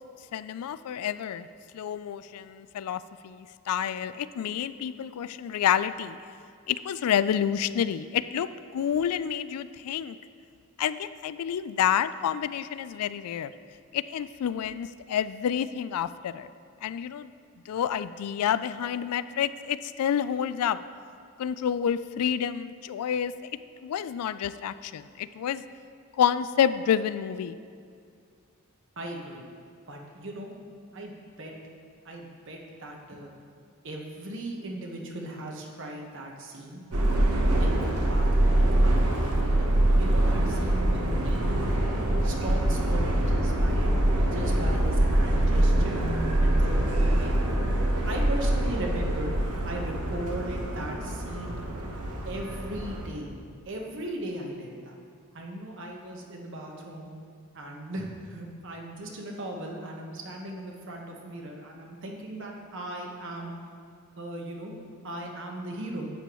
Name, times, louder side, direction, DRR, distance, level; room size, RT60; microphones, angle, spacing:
voice 1, 0.3-1.5 1.7-6.2 6.7-10.2 10.8-13.5 13.9-16.5 16.8-17.3 17.7-20.8 21.4-23.3 23.8-25.6 26.2-27.6, left 9 dB, 80° left, 14 dB, 0.3 m, -29 dB
voice 2, 29.0-29.5 29.9-30.5 30.9-31.5 32.0-33.3 33.8-36.8 37.4-39.7 40.0-41.6 41.9-43.9 44.3-46.0 46.4-47.4 48.0-49.3 49.6-51.6 52.3-53.4 53.7-55.0 55.3-57.1 57.5-63.5 64.2-64.7 65.0-66.1, right 1 dB, 55° right, 0 dB, 1.2 m, -38 dB
Subway metro underground, 36.9-53.1, right 1 dB, 80° right, 1.0 m, -24 dB
11.0 x 8.5 x 3.1 m, 2.3 s
head